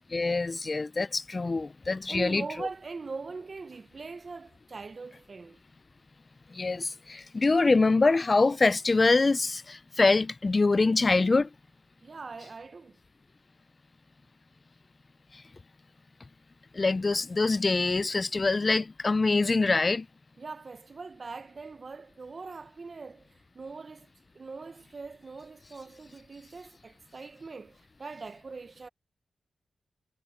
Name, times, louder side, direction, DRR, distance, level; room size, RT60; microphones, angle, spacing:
voice 1, 0.1-2.4 6.5-11.5 16.7-20.1, left 3 dB, 40° left, 0.3 m, -24 dB
voice 2, 2.1-5.6 12.0-13.0 20.4-24.1 24.3-28.9, right 4 dB, 50° right, 0.7 m, -42 dB
cardioid pair, 65°, 0 cm